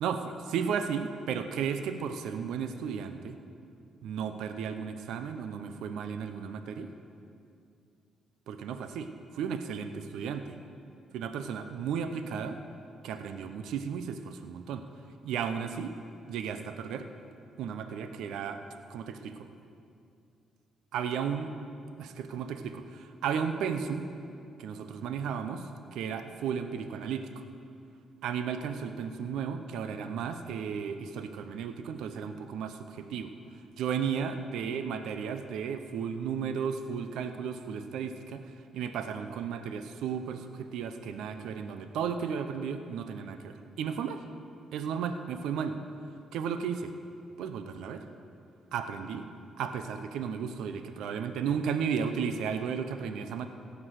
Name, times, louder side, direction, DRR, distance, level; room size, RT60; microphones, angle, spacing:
voice 1, 0.0-3.4 4.0-6.9 8.5-10.6 11.1-12.6 13.0-14.9 15.2-15.9 16.3-17.1 17.6-18.6 18.9-19.5 20.9-21.5 22.0-24.1 24.6-25.6 25.9-27.4 28.2-44.2 44.7-45.8 46.3-46.9 47.4-48.0 48.7-49.3 49.6-53.5, right 7 dB, 85° right, 8 dB, 0.6 m, -34 dB
17.0 x 6.0 x 6.4 m, 2.5 s
cardioid pair, 90°, 0 cm